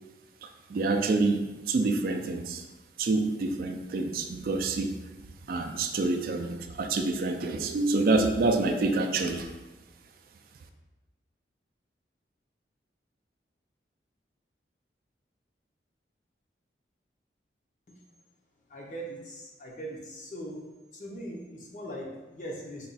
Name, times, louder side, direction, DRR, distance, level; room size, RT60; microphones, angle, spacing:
voice 1, 0.4-2.6 3.0-4.9 5.5-9.5, right 3 dB, 50° right, 6 dB, 0.3 m, -27 dB
voice 2, 18.7-20.6 20.9-22.9, right 1 dB, 45° left, -2 dB, 0.7 m, -40 dB
4.1 x 2.3 x 4.0 m, 1.1 s
head